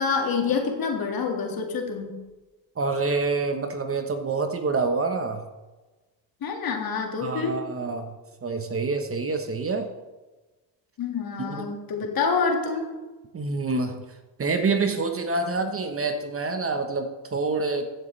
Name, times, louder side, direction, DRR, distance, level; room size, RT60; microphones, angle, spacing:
voice 1, 0.0-2.2 6.4-7.6 11.0-12.9, left 5 dB, 50° left, 3 dB, 2.2 m, -27 dB
voice 2, 2.8-5.4 7.2-8.1 8.4-9.9 11.5-11.7 13.3-14.0 14.4-17.9, right 3 dB, 30° right, 6 dB, 1.2 m, -27 dB
15.0 x 7.3 x 3.4 m, 1.2 s
supercardioid pair, 75°, 45 cm